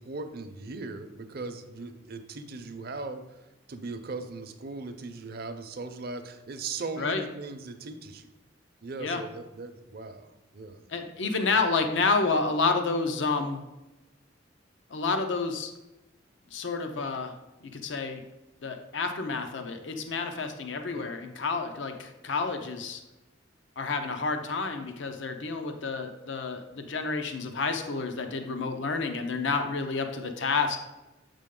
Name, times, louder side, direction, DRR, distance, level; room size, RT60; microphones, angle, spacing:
voice 1, 0.0-8.3 8.8-10.9 20.9-21.1, right 3 dB, 55° right, 8 dB, 0.6 m, -39 dB
voice 2, 10.9-13.6 14.9-15.7 16.5-17.3 17.7-18.2 18.6-23.0 23.8-30.8, left 4 dB, 70° left, 6 dB, 0.6 m, -29 dB
7.4 x 5.2 x 3.7 m, 1.0 s
head